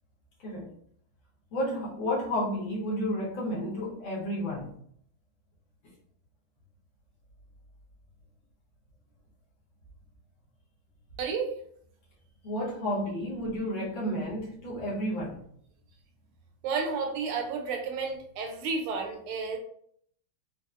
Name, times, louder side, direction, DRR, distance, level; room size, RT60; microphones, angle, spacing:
voice 1, 1.5-4.7 12.4-15.4, equal, 65° left, -5 dB, 1.7 m, -31 dB
voice 2, 11.2-11.6 16.6-19.6, right 4 dB, 85° right, 3 dB, 1.6 m, -31 dB
4.4 x 2.0 x 2.4 m, 0.64 s
omnidirectional pair, 2.4 m